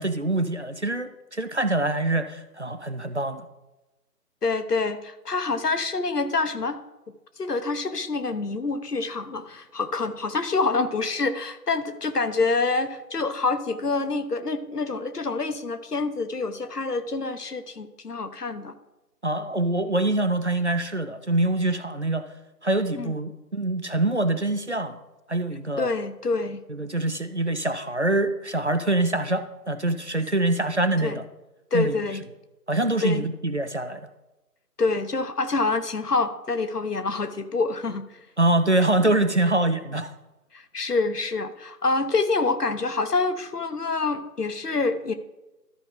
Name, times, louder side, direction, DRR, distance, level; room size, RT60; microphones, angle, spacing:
voice 1, 0.0-3.5 19.2-22.3 22.6-25.0 25.3-25.9 26.7-31.2 31.7-32.0 32.7-34.1 38.4-40.1, right 2 dB, 45° right, 11 dB, 0.5 m, -25 dB
voice 2, 4.4-6.8 7.4-18.7 22.9-23.1 25.8-26.6 31.0-31.2 31.7-32.2 33.0-33.3 34.8-38.1 40.5-45.1, left 3 dB, 70° left, 10 dB, 1.1 m, -26 dB
13.0 x 5.4 x 3.8 m, 1.0 s
figure-of-eight pair, 160°, 48 cm